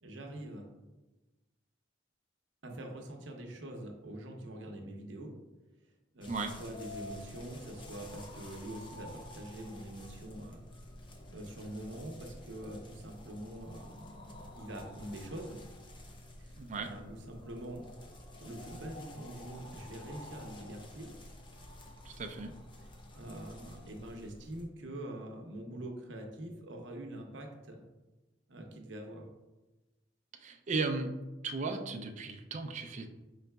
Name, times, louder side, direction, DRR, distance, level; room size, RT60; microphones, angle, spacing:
voice 1, 0.0-0.7 2.6-5.3 6.1-10.6 11.3-15.6 16.4-17.8 18.4-21.1 22.8-22.9 23.1-27.8 28.5-29.3, right 1 dB, 75° right, 2 dB, 0.8 m, -44 dB
sound 1, 6.2-24.7, left 1 dB, 25° left, 0.6 m, -50 dB
voice 2, 16.6-16.9 22.0-22.5 30.4-31.1 31.4-33.1, right 3 dB, 40° right, 5 dB, 0.4 m, -36 dB
5.6 x 3.9 x 2.2 m, 1.1 s
head